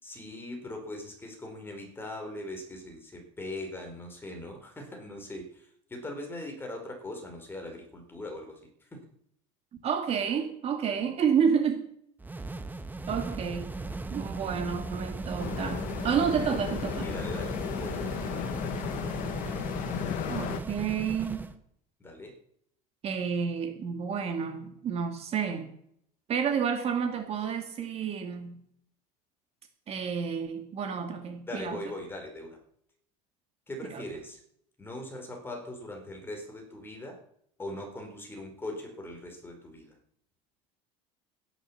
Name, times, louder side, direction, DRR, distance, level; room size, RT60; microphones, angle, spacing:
voice 1, 0.0-9.0 12.4-12.5 17.0-18.2 22.0-22.4 31.5-32.6 33.7-34.4 34.8-37.2 37.6-40.0, left 1 dB, 15° left, 2 dB, 4.5 m, -40 dB
voice 2, 9.8-11.9 13.1-13.7 14.1-17.1 20.3-21.4 23.0-25.7 26.3-28.5 29.9-31.8, right 7 dB, 40° right, 5 dB, 2.4 m, -30 dB
sound 1, 12.2-21.6, right 3 dB, 10° right, 1.3 m, -37 dB
sound 2, 15.4-20.6, left 11 dB, 55° left, 1.5 m, -35 dB
14.5 x 11.0 x 7.2 m, 0.69 s
supercardioid pair, 125°, 16 cm